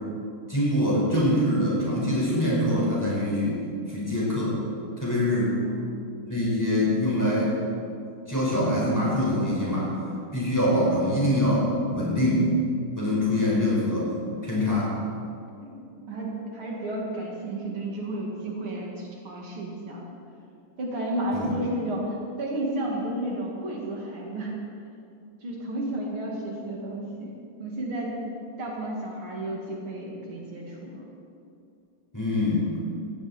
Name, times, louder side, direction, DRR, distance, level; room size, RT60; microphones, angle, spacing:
voice 1, 0.5-3.6 3.9-4.6 5.0-5.5 6.2-7.6 8.3-9.9 10.3-11.7 11.9-12.5 13.0-14.1 14.4-14.9 21.3-21.5 32.1-32.7, left 1 dB, 10° left, -6 dB, 4.8 m, -24 dB
voice 2, 5.6-6.0 13.3-13.4 15.6-15.8 16.1-20.0 20.8-24.5 25.4-27.3 27.6-28.1 28.6-31.0, right 1 dB, 75° right, -2 dB, 3.1 m, -32 dB
17.0 x 15.0 x 4.4 m, 2.5 s
omnidirectional pair, 2.3 m